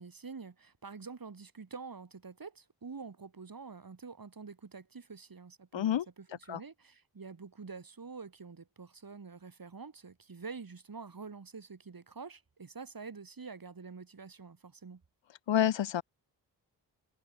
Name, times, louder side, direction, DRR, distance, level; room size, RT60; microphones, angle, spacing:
voice 1, 0.0-15.0, right 5 dB, 50° right, 6.6 m, -47 dB
voice 2, 5.7-6.1 6.5-6.6 15.5-16.0, left 10 dB, 85° left, 1.9 m, -28 dB
supercardioid pair, 45°, 43 cm